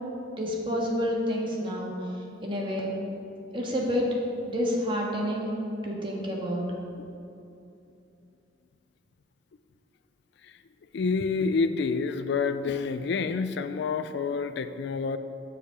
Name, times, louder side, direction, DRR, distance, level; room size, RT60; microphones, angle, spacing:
voice 1, 0.4-1.9 2.4-3.0 3.5-4.1 4.5-5.5 5.8-6.6, equal, 25° right, -2 dB, 1.5 m, -29 dB
voice 2, 10.9-15.2, left 4 dB, 60° left, 10 dB, 0.4 m, -28 dB
10.0 x 6.6 x 5.0 m, 2.7 s
head